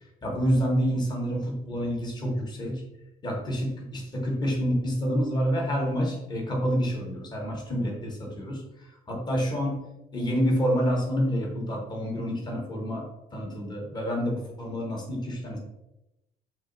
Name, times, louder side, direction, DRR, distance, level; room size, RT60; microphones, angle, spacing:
voice 1, 0.2-2.8 3.2-8.6 9.1-13.0 13.3-15.6, equal, 25° left, -1 dB, 1.5 m, -28 dB
6.1 x 2.1 x 4.0 m, 0.91 s
cardioid pair, 110°, 17 cm